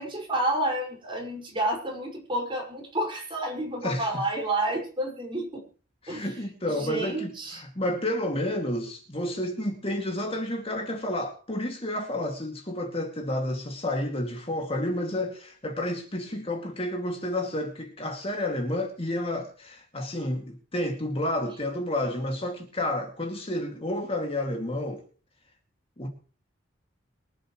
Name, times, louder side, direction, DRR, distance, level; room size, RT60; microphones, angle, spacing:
voice 1, 0.0-5.6 6.1-6.3 6.7-7.6, right 1 dB, 25° right, 5.7 m, -30 dB
voice 2, 3.8-4.4 6.0-25.0 26.0-26.1, left 1 dB, 30° left, 2.4 m, -30 dB
24.0 x 10.0 x 3.2 m
head